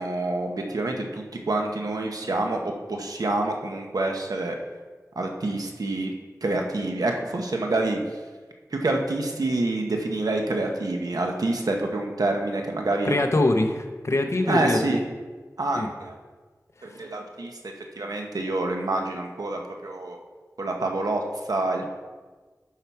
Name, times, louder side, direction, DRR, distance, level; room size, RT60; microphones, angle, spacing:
voice 1, 0.0-4.6 5.2-6.1 6.4-8.0 8.7-13.2 14.5-15.0 15.6-16.1 16.8-20.2 20.6-21.2 21.5-21.9, right 2 dB, 90° right, 2 dB, 1.0 m, -27 dB
voice 2, 13.0-15.0 15.8-15.9 16.9-17.0, left 2 dB, 50° left, 4 dB, 0.8 m, -24 dB
11.5 x 5.8 x 4.7 m, 1.4 s
wide cardioid pair, 65°, 6 cm